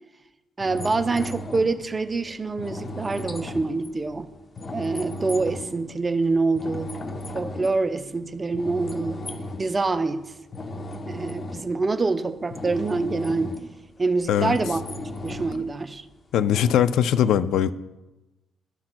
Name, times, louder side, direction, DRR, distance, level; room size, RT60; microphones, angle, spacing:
sound 1, 0.6-5.9 6.3-8.3 8.5-9.8 10.1-13.8 14.2-15.7 16.5-16.8, left 1 dB, 35° left, 0.7 m, -36 dB
voice 1, 0.6-4.3 4.7-6.9 7.3-9.2 9.6-10.3 11.1-13.5 14.0-14.8 15.2-16.0, right 3 dB, 25° right, 10 dB, 0.5 m, -25 dB
voice 2, 16.3-17.7, left 9 dB, 80° left, 14 dB, 0.3 m, -20 dB
13.0 x 5.8 x 2.2 m, 1.0 s
cardioid pair, 90°, 0 cm